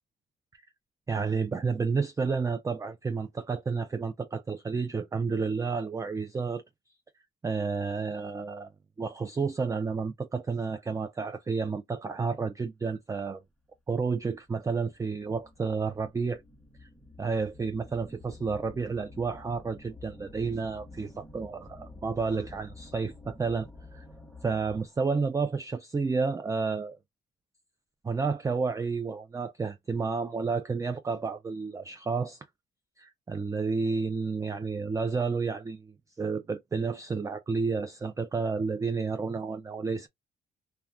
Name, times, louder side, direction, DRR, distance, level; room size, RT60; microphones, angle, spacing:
voice 1, 1.1-6.6 7.4-8.7 9.0-13.4 13.9-16.4 16.8-16.9 17.2-23.7 23.9-24.0 24.4-27.0 28.0-32.5 33.0-40.1, right 4 dB, 15° right, 0.4 m, -31 dB
sound 1, 13.6-13.7 14.4-25.1, left 2 dB, ahead, 0.8 m, -50 dB
2.4 x 2.2 x 3.2 m
cardioid pair, 90°, 20 cm